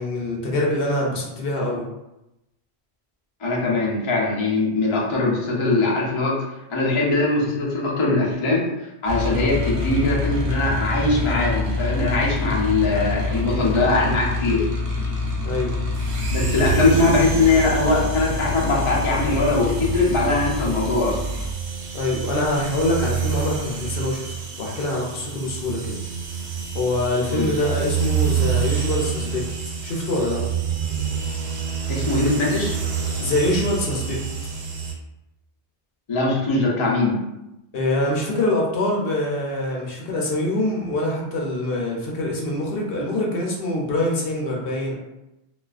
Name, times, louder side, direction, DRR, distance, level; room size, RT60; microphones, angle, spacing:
voice 1, 0.0-1.8 15.4-15.7 16.6-16.7 21.9-26.0 26.7-29.5 29.8-30.4 33.2-34.2 37.7-44.9, left 1 dB, 70° left, -2 dB, 0.7 m, -24 dB
voice 2, 3.4-8.7 9.0-14.7 16.3-21.2 27.3-27.5 31.9-32.8 36.1-37.2, left 2 dB, 40° left, -4 dB, 0.5 m, -21 dB
sound 1, 9.1-21.5, left 2 dB, 50° right, 0.5 m, -26 dB
sound 2, 15.9-34.9, right 7 dB, 90° right, 0.9 m, -28 dB
2.3 x 2.3 x 2.3 m, 0.92 s
omnidirectional pair, 1.1 m